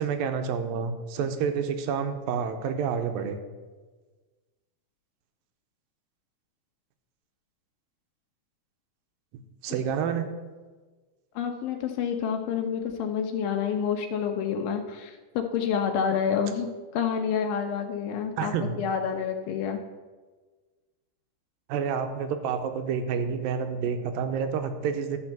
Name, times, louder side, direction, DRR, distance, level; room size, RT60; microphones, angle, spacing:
voice 1, 0.0-3.4 9.6-10.2 18.4-18.8 21.7-25.2, right 6 dB, 85° right, 7 dB, 2.5 m, -29 dB
voice 2, 11.4-19.8, left 7 dB, 90° left, 4 dB, 2.5 m, -28 dB
12.5 x 4.4 x 7.3 m, 1.3 s
omnidirectional pair, 4.0 m